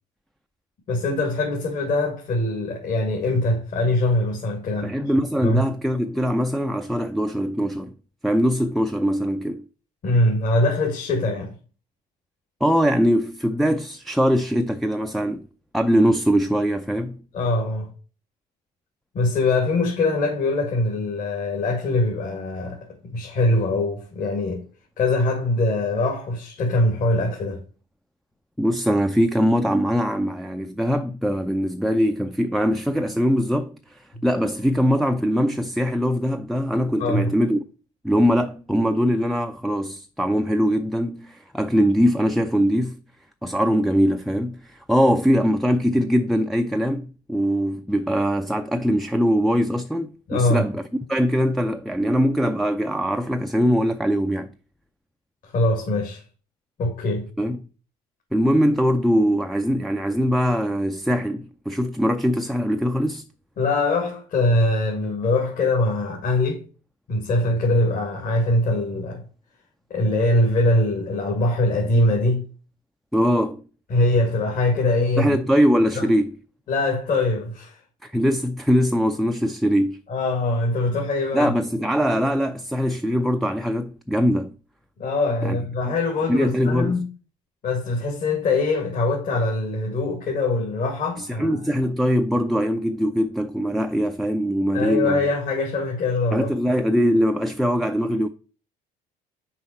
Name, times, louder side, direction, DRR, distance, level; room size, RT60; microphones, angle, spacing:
voice 1, 0.9-4.9 5.4-5.7 10.0-11.6 17.3-17.9 19.1-24.6 25.0-27.6 37.0-37.3 50.3-50.7 55.4-56.2 56.8-57.3 63.6-66.6 67.1-69.2 69.9-72.5 73.9-75.4 75.9-76.1 76.7-77.8 80.1-81.5 85.0-87.1 87.6-91.6 94.7-96.5, left 2 dB, 50° left, 2.3 m, -22 dB
voice 2, 4.8-7.9 8.2-9.6 12.6-15.4 15.7-17.2 28.6-37.6 38.0-43.0 43.4-54.5 57.4-57.6 58.3-63.2 73.1-73.6 75.2-76.3 78.0-80.0 81.3-84.5 85.4-85.6 85.8-85.9 86.3-87.0 91.2-95.3 96.3-98.3, equal, ahead, 0.5 m, -22 dB
5.7 x 5.2 x 4.3 m
supercardioid pair, 95°, 18 cm